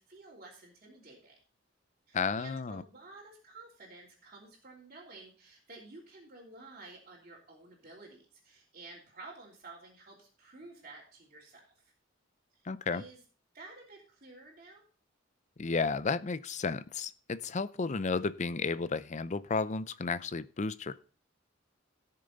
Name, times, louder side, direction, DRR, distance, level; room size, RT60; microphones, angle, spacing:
voice 1, 0.0-1.3 2.1-11.9 12.5-12.6 12.9-13.2 13.5-14.8, right 3 dB, 45° right, -7 dB, 3.4 m, -52 dB
voice 2, 2.1-2.8 12.7-13.0 15.6-21.0, left 4 dB, 40° left, 15 dB, 0.6 m, -33 dB
17.5 x 6.7 x 4.0 m, 0.40 s
head